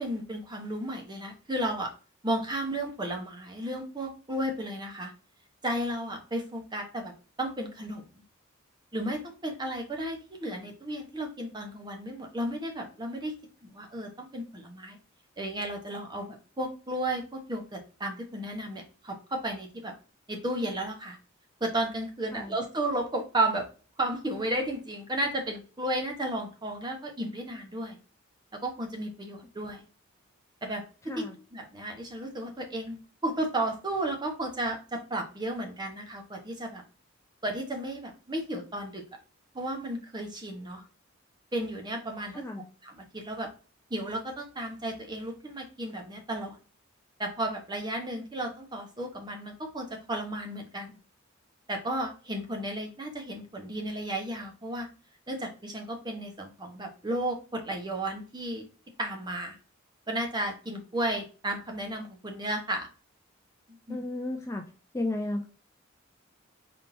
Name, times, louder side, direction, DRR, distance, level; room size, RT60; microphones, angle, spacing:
voice 1, 0.0-1.9 2.2-5.1 5.6-7.1 7.4-8.0 8.9-13.3 13.7-15.0 15.4-19.9 20.3-21.2 21.6-23.7 24.0-28.0 28.6-29.8 30.6-30.8 31.2-31.3 31.5-33.0 33.2-36.8 37.4-39.0 39.5-40.8 41.5-42.4 42.8-43.5 43.9-46.6 47.2-51.0 51.7-54.9 55.3-58.6 59.0-59.6 60.1-62.9 63.7-64.0, right 1 dB, 20° right, 2 dB, 0.9 m, -33 dB
voice 2, 31.0-31.4 42.3-42.7 63.9-64.6 64.9-65.5, left 2 dB, 15° left, 4 dB, 0.4 m, -33 dB
4.2 x 3.6 x 2.6 m, 0.36 s
head